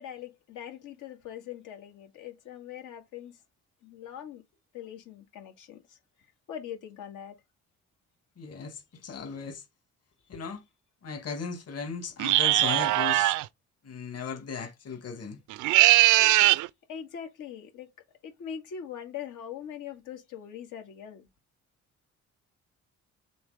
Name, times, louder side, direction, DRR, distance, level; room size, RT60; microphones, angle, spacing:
voice 1, 0.0-3.4 3.8-4.4 4.7-7.4 16.9-17.9 18.2-21.3, left 9 dB, 85° left, 2.3 m, -42 dB
voice 2, 8.4-9.6 10.3-10.6 11.0-13.4 13.8-15.4 16.2-16.4, left 5 dB, 55° left, 2.2 m, -37 dB
sound 1, 12.2-13.4 15.5-16.7, right 17 dB, 85° right, 0.5 m, -21 dB
6.9 x 3.6 x 5.0 m
cardioid pair, 90°, 30 cm